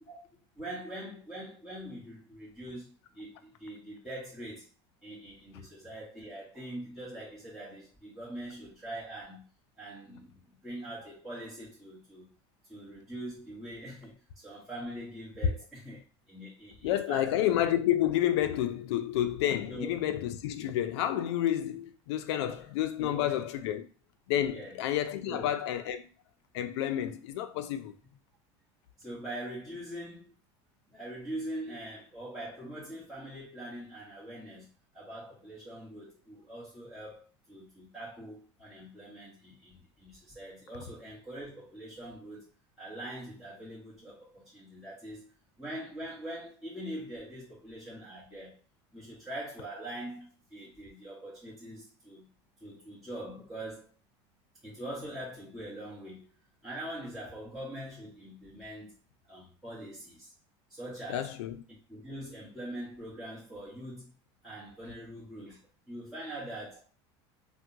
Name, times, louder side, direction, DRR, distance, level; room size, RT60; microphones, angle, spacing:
voice 1, 0.5-4.7 5.0-9.4 9.8-12.3 12.7-16.0 16.3-17.5 18.9-19.0 19.7-20.0 23.0-23.4 24.5-24.8 25.2-25.5 27.0-27.1 29.0-30.3 30.9-34.7 34.9-42.5 42.8-45.3 45.6-48.6 48.9-52.2 52.6-53.9 54.6-56.2 56.6-58.9 59.3-60.3 60.7-61.4 61.9-64.1 64.4-65.6 65.9-66.8, right 1 dB, 5° right, 1.3 m, -43 dB
voice 2, 16.8-23.9 24.3-26.1 26.5-27.9 61.1-61.6, left 12 dB, 80° left, 0.4 m, -30 dB
3.4 x 2.2 x 2.8 m
supercardioid pair, 110°, 14 cm